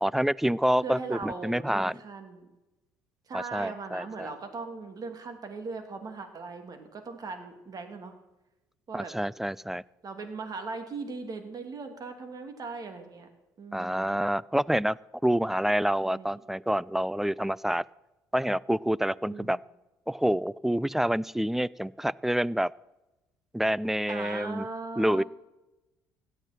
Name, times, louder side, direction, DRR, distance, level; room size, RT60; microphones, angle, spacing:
voice 1, 0.0-2.0 3.3-4.3 8.9-9.8 13.7-15.0 15.2-17.9 18.3-19.6 20.1-22.7 23.5-24.7 25.0-25.2, equal, 5° right, 24 dB, 0.4 m, -27 dB
voice 2, 0.8-2.5 3.3-8.1 8.9-9.1 10.0-13.3 13.6-14.1 16.0-16.4 19.2-19.6 24.1-25.2, right 4 dB, 45° right, 6 dB, 2.7 m, -39 dB
17.0 x 12.0 x 4.4 m, 1.0 s
hypercardioid pair, 65°, 9 cm